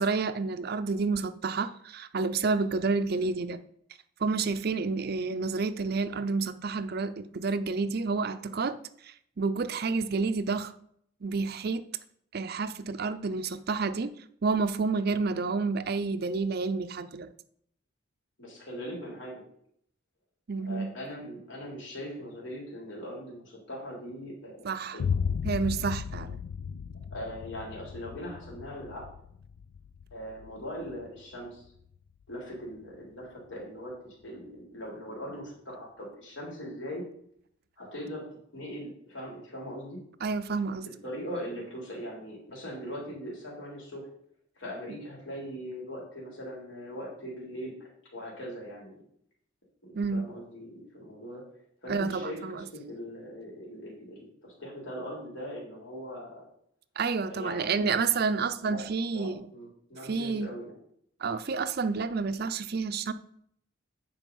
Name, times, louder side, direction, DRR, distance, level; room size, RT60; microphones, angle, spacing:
voice 1, 0.0-3.6 4.2-8.8 9.0-10.7 11.2-11.8 12.3-14.1 14.4-17.3 20.5-20.9 24.6-25.0 25.4-26.4 40.2-40.9 44.9-45.0 49.9-50.3 51.9-52.7 57.0-59.5 60.0-60.5 61.2-63.1, right 4 dB, 50° right, 0.5 m, -29 dB
voice 2, 18.4-19.4 20.6-25.0 27.1-29.0 30.1-31.6 32.3-37.0 37.8-38.2 38.5-40.0 40.8-44.0 44.5-47.7 48.1-49.0 49.8-51.4 51.8-56.5 57.2-58.8 59.1-60.8 62.3-62.4, equal, 65° left, 3.4 m, -41 dB
Boom, 25.0-32.8, left 6 dB, 85° left, 0.3 m, -36 dB
9.3 x 4.9 x 5.3 m
head